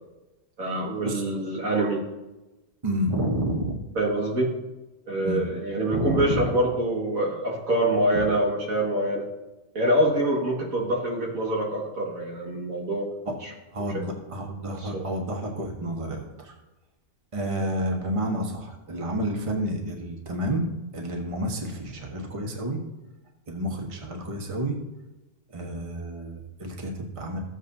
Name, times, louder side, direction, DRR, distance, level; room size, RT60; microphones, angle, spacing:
voice 1, 0.6-2.0 4.0-4.6 5.1-9.3 9.7-13.1, right 1 dB, 75° right, -2 dB, 2.3 m, -25 dB
voice 2, 2.8-3.8 5.2-5.4 5.9-6.5 13.2-13.3 13.7-16.5 17.3-22.8 23.5-24.8 25.5-27.4, right 1 dB, 25° right, 1 dB, 1.2 m, -30 dB
14.5 x 8.0 x 2.7 m, 1.0 s
omnidirectional pair, 1.4 m